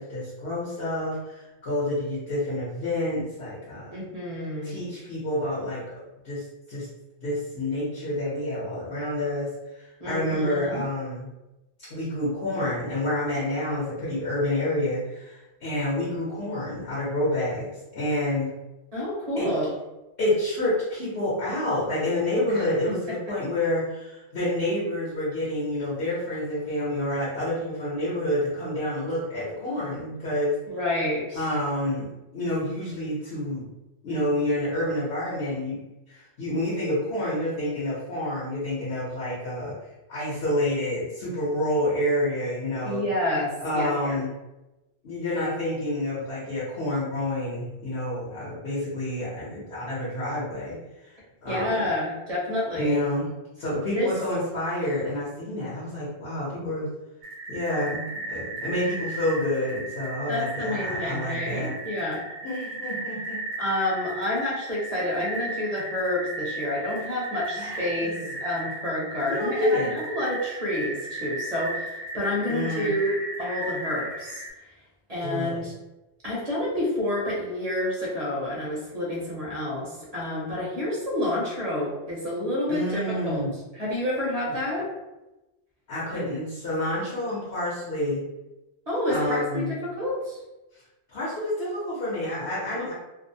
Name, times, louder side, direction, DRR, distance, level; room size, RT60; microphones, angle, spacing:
voice 1, 0.0-4.0 4.6-6.0 6.2-6.9 7.2-11.3 11.8-18.5 19.4-19.5 20.2-30.6 31.3-33.6 34.0-35.8 36.1-39.7 40.1-43.0 43.6-44.3 45.0-50.8 51.0-51.9 52.7-53.3 53.6-56.9 57.5-61.7 62.4-63.4 67.5-68.3 69.3-69.9 72.5-72.9 75.2-75.7 82.7-83.5 84.4-84.5 85.9-88.2 89.1-89.7 90.7-90.8 91.1-92.9, left 1 dB, 60° left, -8 dB, 1.0 m, -28 dB
voice 2, 3.9-4.8 10.0-10.9 18.9-19.7 22.5-22.6 30.7-31.4 42.8-44.2 51.5-53.0 54.0-54.1 60.3-62.2 63.6-74.4 75.1-75.7 76.2-83.4 83.8-84.9 86.1-86.2 88.9-90.4 92.8-92.9, left 1 dB, 40° right, -5 dB, 0.8 m, -29 dB
sound 1, 57.2-74.5, right 2 dB, 60° right, 1.0 m, -35 dB
2.6 x 2.0 x 2.6 m, 1.0 s
omnidirectional pair, 1.1 m